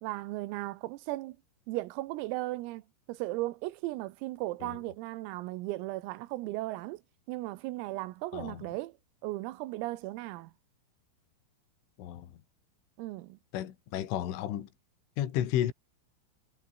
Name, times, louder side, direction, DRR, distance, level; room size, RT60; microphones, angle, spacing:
voice 1, 0.0-1.4 1.7-2.8 3.1-7.0 7.3-8.9 9.2-10.5 13.0-13.4, right 18 dB, 90° right, 3.7 m, -36 dB
voice 2, 8.3-8.7 12.0-12.3 13.5-14.7 15.2-15.7, left 11 dB, 70° left, 4.7 m, -32 dB
omnidirectional pair, 5.9 m